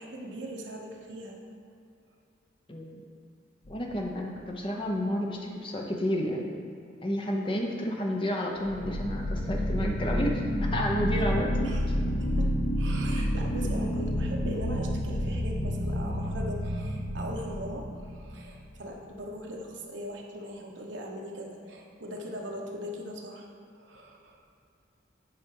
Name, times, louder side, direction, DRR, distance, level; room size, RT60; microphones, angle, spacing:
voice 1, 0.0-1.4 11.6-11.8 12.2-23.4 23.7-24.4, equal, 70° right, 0 dB, 1.1 m, -40 dB
voice 2, 2.7-3.0 3.7-6.5 7.0-10.4 10.7-12.0 13.2-13.3, equal, 25° left, 0 dB, 0.8 m, -31 dB
sound 1, 3.7-4.2 8.6-18.8, equal, 85° left, 0.9 m, -30 dB
8.7 x 5.0 x 4.7 m, 2.4 s
head